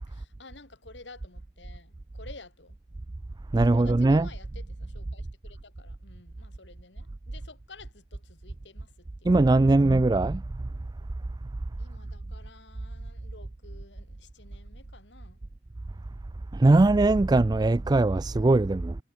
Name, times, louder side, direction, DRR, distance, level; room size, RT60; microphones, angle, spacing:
voice 1, 0.1-2.8 3.5-9.8 11.8-15.4, left 3 dB, 80° left, 3.3 m, -51 dB
voice 2, 3.5-4.3 9.2-10.4 16.5-19.0, right 2 dB, 25° right, 0.4 m, -20 dB
head